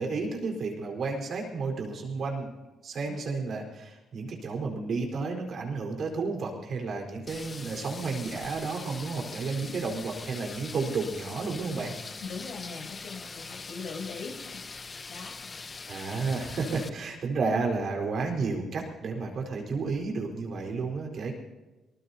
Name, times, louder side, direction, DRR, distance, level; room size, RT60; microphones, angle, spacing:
voice 1, 0.0-2.5 2.8-11.9 15.9-21.3, right 4 dB, 60° right, 1 dB, 4.2 m, -32 dB
sound 1, 7.3-16.9, left 4 dB, 35° left, 0.8 m, -42 dB
voice 2, 12.2-15.5, left 4 dB, 70° left, -1 dB, 6.9 m, -41 dB
24.0 x 19.5 x 2.8 m, 1.1 s
supercardioid pair, 55°, 0 cm